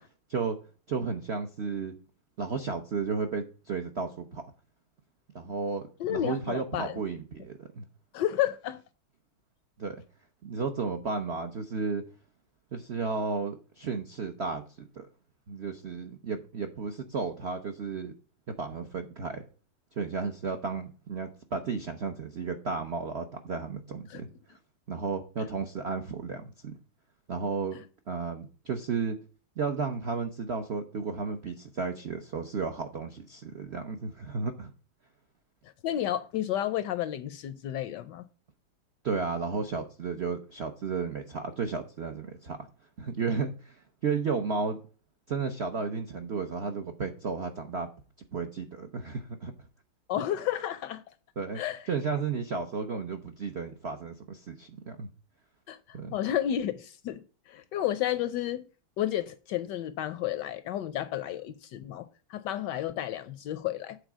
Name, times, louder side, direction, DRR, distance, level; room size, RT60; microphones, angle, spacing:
voice 1, 0.9-1.9 2.4-4.4 5.3-5.8 6.1-7.9 9.8-10.0 10.4-12.0 12.7-15.1 15.5-18.1 18.5-19.4 20.0-24.6 24.9-26.8 27.3-27.8 28.1-29.2 29.6-34.7 39.0-42.6 43.0-44.8 45.3-47.9 48.3-49.5 51.4-51.6 51.9-55.1 55.9-56.1, right 5 dB, 65° right, 0.6 m, -33 dB
voice 2, 6.0-7.0 8.1-8.8 24.1-24.2 35.8-38.3 50.1-51.0 51.5-51.8 55.7-58.6 59.0-64.0, left 11 dB, 75° left, 1.0 m, -31 dB
8.2 x 4.0 x 6.1 m
omnidirectional pair, 2.2 m